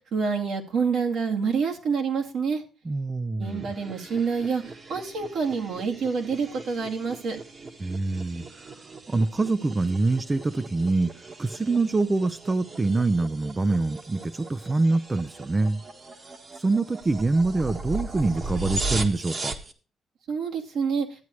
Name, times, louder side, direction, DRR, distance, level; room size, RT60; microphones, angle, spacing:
voice 1, 0.1-2.6 3.4-4.6 4.9-7.4 20.3-21.1, right 5 dB, 70° right, 0 dB, 2.3 m, -27 dB
voice 2, 2.8-3.7 7.8-8.7 9.1-11.1 11.4-15.8 16.6-19.5, right 3 dB, 25° right, 11 dB, 0.5 m, -25 dB
sound 1, 3.4-19.7, right 2 dB, 40° right, 1.5 m, -38 dB
12.5 x 8.3 x 3.1 m, 0.35 s
cardioid pair, 90°, 0 cm